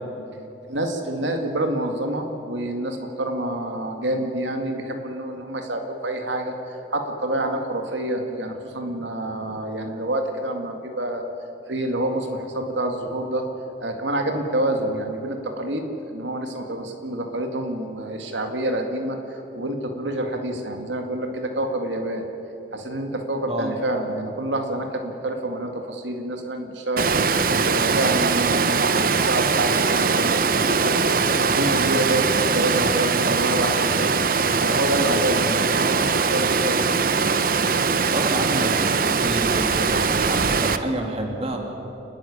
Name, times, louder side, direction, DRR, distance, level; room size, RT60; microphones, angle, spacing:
voice 1, 0.7-11.2 11.7-13.5 13.8-22.2 22.7-27.2 27.6-34.1 34.6-37.1, right 1 dB, 85° right, 4 dB, 2.1 m, -27 dB
Water, 27.0-40.8, right 5 dB, 50° right, 0.8 m, -21 dB
voice 2, 38.1-41.6, right 1 dB, 30° right, 2 dB, 2.7 m, -29 dB
29.5 x 10.5 x 10.0 m, 2.9 s
head